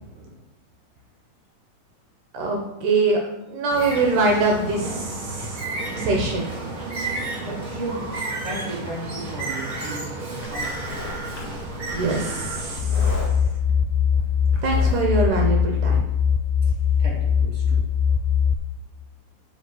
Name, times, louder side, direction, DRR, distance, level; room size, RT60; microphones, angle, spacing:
voice 1, 2.3-3.2 3.5-5.6 6.0-6.5 11.9-13.1 14.6-16.0, right 3 dB, 75° right, 1 dB, 2.6 m, -23 dB
Bird, 3.7-12.8, right 2 dB, 35° right, 1.5 m, -32 dB
voice 2, 7.4-11.0 17.0-17.8, right 2 dB, 15° right, -7 dB, 3.3 m, -35 dB
Livestock farm animals working animals, 10.4-15.5, left 2 dB, 40° left, 2.2 m, -36 dB
sound 1, 12.8-18.5, left 7 dB, 80° left, 1.9 m, -21 dB
9.0 x 4.8 x 7.7 m, 0.95 s
omnidirectional pair, 3.8 m